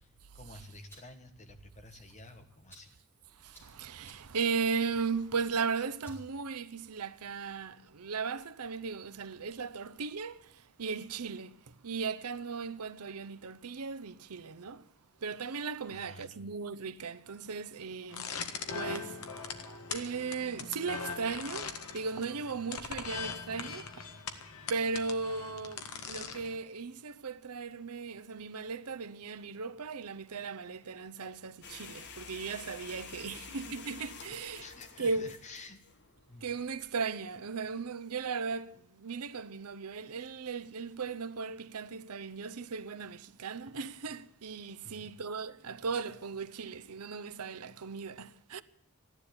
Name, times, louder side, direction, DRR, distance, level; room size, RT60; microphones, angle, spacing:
voice 1, 0.0-3.0 15.9-16.4 33.3-33.8 34.6-35.8 36.3-36.6 44.8-45.1, left 2 dB, 30° left, 1.6 m, -51 dB
sound 1, 0.6-7.1, right 1 dB, 10° left, 5.0 m, -63 dB
voice 2, 3.4-14.8 15.2-18.3 18.7-19.2 19.9-23.9 24.7-34.6 35.0-35.3 36.4-48.6, right 5 dB, 90° right, 0.8 m, -37 dB
sound 2, 18.1-26.6, left 5 dB, 80° left, 1.7 m, -41 dB
sound 3, 31.6-36.9, left 5 dB, 50° left, 1.4 m, -49 dB
14.5 x 11.0 x 8.5 m
head